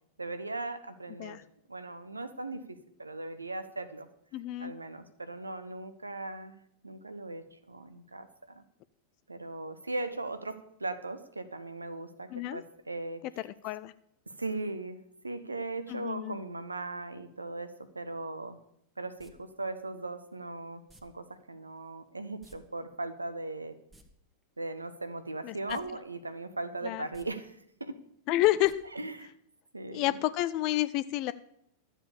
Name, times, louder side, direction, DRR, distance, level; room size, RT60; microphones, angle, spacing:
voice 1, 0.2-1.4 1.7-4.1 4.6-8.6 9.3-13.2 14.3-18.6 19.0-23.8 24.6-28.0 28.9-29.3 29.7-30.2, right 2 dB, 80° right, 12 dB, 0.9 m, -39 dB
voice 2, 4.3-4.7 12.3-12.6 13.6-13.9 15.9-16.4 25.4-25.8 26.8-27.0 28.3-28.8 29.9-31.3, left 16 dB, 40° left, 15 dB, 0.4 m, -29 dB
sound 1, 19.2-19.3 20.9-21.0 22.4-22.6 22.8-22.9 23.8-24.0 25.7-25.8 26.2-26.3 27.0-27.3 28.6-28.7 29.1-29.2, right 1 dB, 10° right, 1.5 m, -56 dB
12.5 x 7.5 x 6.9 m, 0.74 s
figure-of-eight pair, 90°, 0 cm